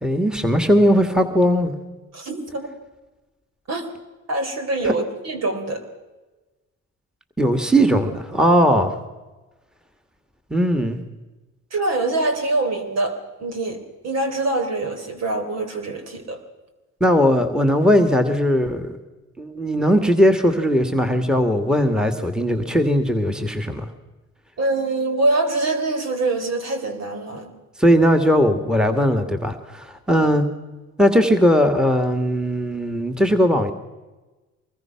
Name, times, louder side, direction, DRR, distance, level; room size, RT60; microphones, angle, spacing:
voice 1, 0.0-1.7 4.8-4.9 7.4-8.9 10.5-11.0 17.0-19.0 19.4-23.9 27.8-30.4 31.0-33.7, equal, ahead, 7 dB, 2.0 m, -18 dB
voice 2, 2.1-2.7 3.7-3.9 4.3-5.8 11.7-16.4 24.6-27.5 30.1-30.3, right 2 dB, 60° right, 6 dB, 3.9 m, -24 dB
24.0 x 20.5 x 6.0 m, 1.2 s
cardioid pair, 90°, 30 cm